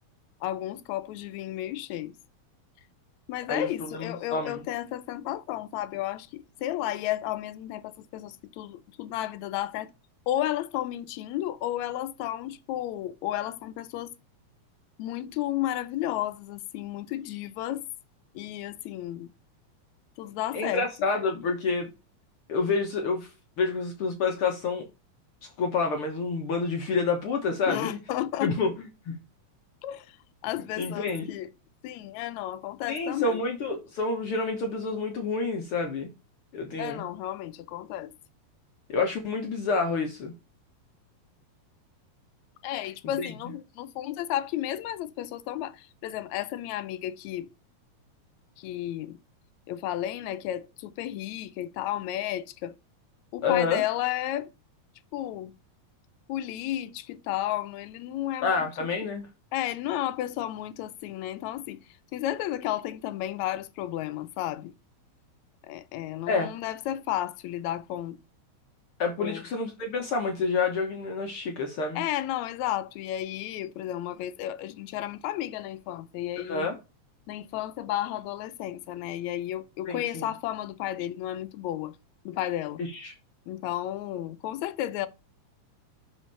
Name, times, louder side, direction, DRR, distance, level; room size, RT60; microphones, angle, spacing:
voice 1, 0.4-2.1 3.3-9.9 10.3-14.1 15.0-17.8 18.4-19.3 20.2-20.9 27.7-28.5 29.8-30.1 30.4-31.5 31.8-33.4 36.8-38.1 42.6-47.5 48.6-49.2 49.7-52.8 53.3-54.5 55.1-55.5 56.3-59.1 59.5-61.8 62.1-64.7 65.7-68.2 69.2-69.4 72.0-76.7 77.3-81.9 82.3-82.8 83.5-85.1, left 13 dB, 80° left, 1.9 m, -33 dB
voice 2, 3.5-4.6 20.5-21.9 22.5-23.3 23.6-24.8 25.6-28.0 28.4-28.7 29.1-29.2 30.8-31.4 32.9-36.1 36.5-37.0 38.9-40.3 43.2-43.3 53.4-53.8 58.4-59.3 66.3-66.5 69.0-72.0 76.5-76.8 79.9-80.3 82.8-83.1, left 4 dB, 55° left, 1.7 m, -28 dB
6.2 x 5.0 x 5.4 m
omnidirectional pair, 3.3 m